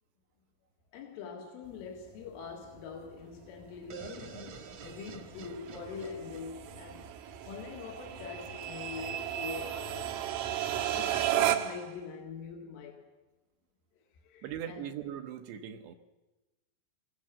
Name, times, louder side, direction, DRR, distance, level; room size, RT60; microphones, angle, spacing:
voice 1, 0.9-7.1 7.4-10.2 10.9-13.1 14.0-14.9, left 6 dB, 75° left, 4.3 m, -44 dB
sound 1, 1.7-11.9, right 12 dB, 90° right, 4.1 m, -35 dB
sound 2, 3.9-7.7, right 5 dB, 50° right, 2.1 m, -48 dB
voice 2, 14.4-16.0, right 10 dB, 70° right, 2.9 m, -40 dB
28.0 x 22.0 x 7.5 m
omnidirectional pair, 5.7 m